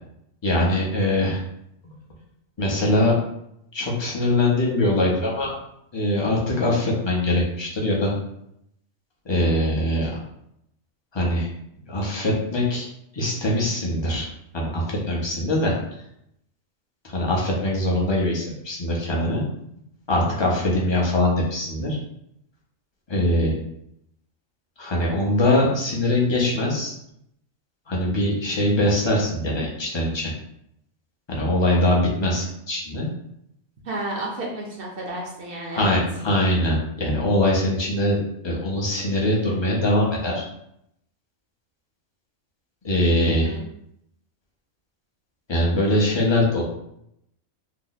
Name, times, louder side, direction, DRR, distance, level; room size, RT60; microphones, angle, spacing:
voice 1, 0.4-1.4 2.6-3.2 3.7-5.5 5.9-8.1 9.2-10.1 11.1-11.5 11.9-12.9 13.1-14.3 14.5-15.8 17.0-19.4 20.1-22.0 23.1-23.5 24.8-26.9 27.9-30.3 31.3-33.1 35.7-38.2 38.4-40.5 42.8-43.5 45.5-46.6, left 1 dB, 30° left, -3 dB, 0.5 m, -22 dB
voice 2, 20.3-20.6 23.3-23.5 33.8-36.0 43.3-43.6, right 2 dB, 55° right, -2 dB, 0.7 m, -32 dB
2.8 x 2.0 x 3.9 m, 0.77 s
omnidirectional pair, 1.4 m